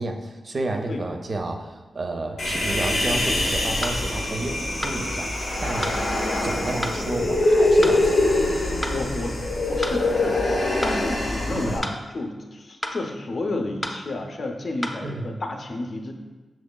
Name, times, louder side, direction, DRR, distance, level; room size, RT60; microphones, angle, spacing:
voice 1, 0.0-5.9 6.4-8.4 11.5-11.8 15.0-15.4, right 2 dB, 50° right, 4 dB, 0.5 m, -31 dB
Human voice, 2.4-11.8, left 1 dB, 85° left, 0.8 m, -23 dB
sound 1, 2.8-3.0 3.8-4.0 4.8-5.0 5.8-6.0 6.8-7.0 7.8-8.0 8.8-9.0 9.8-10.0 10.8-11.0 11.8-12.0 12.8-13.0 13.8-14.0 14.8-15.0, left 1 dB, 5° left, 0.5 m, -30 dB
voice 2, 8.8-9.4 9.7-16.1, left 2 dB, 60° left, 3 dB, 0.5 m, -31 dB
6.2 x 3.0 x 2.2 m, 1.2 s
cardioid pair, 65°, 0 cm